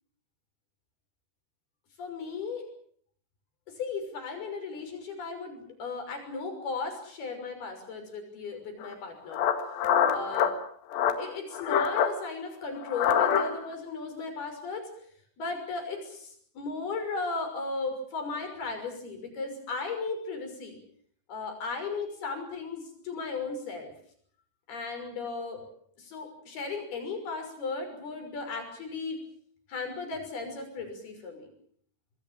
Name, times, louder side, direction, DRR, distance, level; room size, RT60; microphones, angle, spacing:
voice 1, 2.0-2.6 3.7-9.4 10.1-10.5 10.9-14.9 15.4-20.8 21.3-23.9 24.7-25.6 26.0-29.2 29.7-31.5, left 4 dB, 65° left, 5 dB, 8.0 m, -36 dB
sound 1, 8.8-8.9 9.3-10.5 10.9-11.2 11.5-12.1 12.8-13.7, left 8 dB, 85° left, 4.0 m, -25 dB
26.5 x 21.0 x 7.6 m, 0.62 s
omnidirectional pair, 4.8 m